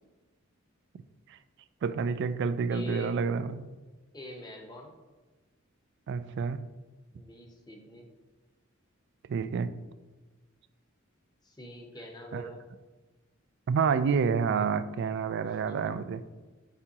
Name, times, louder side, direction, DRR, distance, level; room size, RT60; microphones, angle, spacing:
voice 1, 1.8-3.7 6.1-6.6 9.3-9.7 12.3-12.4 13.7-16.2, right 5 dB, 60° right, 13 dB, 0.3 m, -28 dB
voice 2, 2.7-3.2 4.1-4.9 7.1-8.1 11.4-12.6 15.4-15.9, left 1 dB, 20° left, 2 dB, 0.8 m, -45 dB
7.2 x 4.7 x 2.9 m, 1.2 s
head